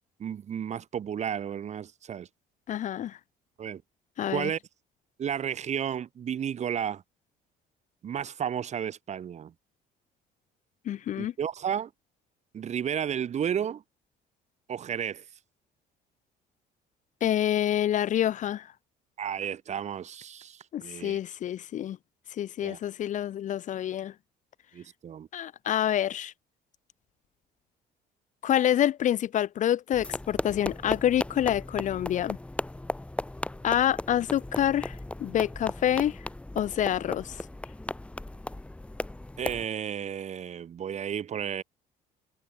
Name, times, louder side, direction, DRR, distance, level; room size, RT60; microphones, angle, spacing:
voice 1, 0.2-2.3 3.6-3.8 4.3-4.6 5.2-7.0 8.0-9.5 11.2-11.9 12.5-13.8 14.7-15.2 19.2-21.2 22.6-22.8 24.7-25.3 39.4-41.6, right 8 dB, 45° right, 1.1 m, -32 dB
voice 2, 2.7-3.2 4.2-4.5 10.9-11.3 17.2-18.7 20.7-22.0 22.4-24.1 25.3-26.3 28.4-32.4 33.6-36.2 36.6-37.4, left 11 dB, 45° left, 0.5 m, -27 dB
sound 1, 29.9-39.6, left 1 dB, 5° left, 0.7 m, -36 dB
cardioid pair, 110°, 17 cm